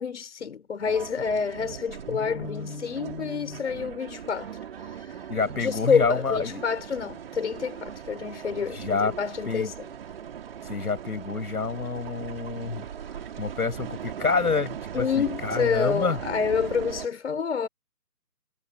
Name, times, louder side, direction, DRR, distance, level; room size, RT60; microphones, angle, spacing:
voice 1, 0.0-5.3 5.6-9.7 14.9-17.7, left 6 dB, 45° left, 4.8 m, -28 dB
sound 1, 0.8-17.1, right 8 dB, 35° right, 4.5 m, -39 dB
voice 2, 2.1-3.6 5.3-6.6 8.7-9.1 9.5-9.7 10.6-12.9 13.4-16.2, left 4 dB, 65° left, 7.4 m, -28 dB
figure-of-eight pair, 150°, 48 cm